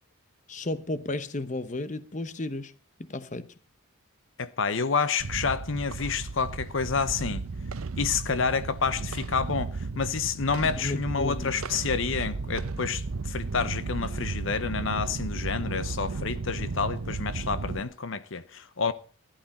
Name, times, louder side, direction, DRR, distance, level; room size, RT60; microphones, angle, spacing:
voice 1, 0.5-2.7 3.0-3.5 10.8-11.8, left 2 dB, 35° left, 0.9 m, -33 dB
voice 2, 4.4-7.4 8.0-18.9, left 5 dB, 65° left, 0.8 m, -29 dB
sound 1, 5.2-17.8, right 3 dB, 85° right, 0.7 m, -34 dB
15.5 x 11.5 x 4.2 m
head